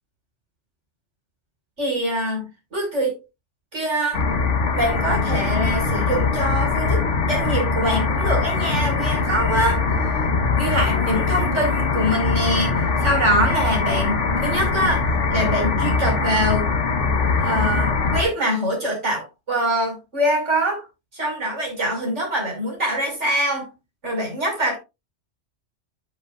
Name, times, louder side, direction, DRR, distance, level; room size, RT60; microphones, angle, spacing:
voice 1, 1.8-3.1 3.7-4.2 4.7-9.8 10.6-12.7 13.0-16.7 17.4-20.8 21.1-23.7 24.0-24.8, equal, 80° right, 6.1 m, -24 dB
sound 1, 4.1-18.2, left 4 dB, 80° left, 1.7 m, -22 dB
13.0 x 8.0 x 2.5 m
omnidirectional pair, 1.2 m